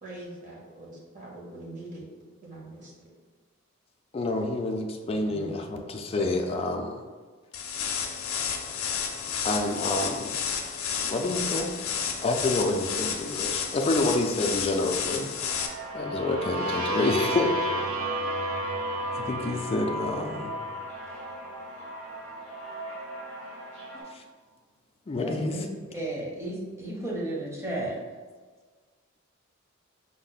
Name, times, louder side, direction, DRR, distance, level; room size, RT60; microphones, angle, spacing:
voice 1, 0.0-2.1 2.4-2.9 5.3-5.5 6.2-6.3, right 2 dB, 40° right, -5 dB, 1.2 m, -42 dB
voice 2, 4.1-7.0 9.4-10.3 11.1-11.7 12.2-15.7 15.9-17.5 19.2-20.5 24.1-24.2 25.1-25.6, left 2 dB, 30° left, 2 dB, 0.3 m, -28 dB
sound 1, 7.5-15.7, left 7 dB, 90° left, 0.5 m, -31 dB
sound 2, 15.4-24.0, right 2 dB, 60° right, 1.2 m, -40 dB
sound 3, 15.8-21.7, equal, 85° right, 0.5 m, -32 dB
voice 3, 25.1-25.6 25.9-28.0, right 1 dB, 15° right, -3 dB, 0.8 m, -33 dB
5.1 x 2.1 x 3.9 m, 1.5 s
head